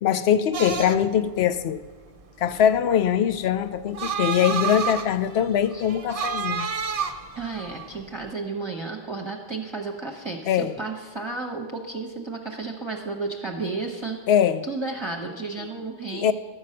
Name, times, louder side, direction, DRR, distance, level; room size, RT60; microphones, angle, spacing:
voice 1, 0.0-1.8 2.4-6.7 10.5-10.7 14.3-14.6 16.1-16.3, left 9 dB, 80° left, 12 dB, 0.8 m, -22 dB
sound 1, 0.5-8.3, right 7 dB, 45° right, 0.5 m, -31 dB
voice 2, 7.3-14.2 14.6-16.3, right 3 dB, 30° right, -1 dB, 0.9 m, -32 dB
12.0 x 5.5 x 7.6 m, 1.4 s
omnidirectional pair, 1.1 m